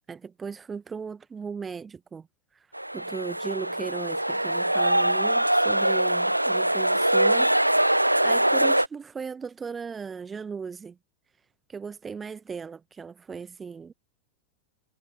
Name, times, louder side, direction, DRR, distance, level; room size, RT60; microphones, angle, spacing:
voice 1, 0.1-2.3 2.5-2.7 2.9-11.0 11.7-13.9, right 5 dB, 15° right, 0.9 m, -37 dB
sound 1, 2.7-8.9, right 1 dB, 85° right, 0.3 m, -23 dB
figure-of-eight pair, 90°, 0 cm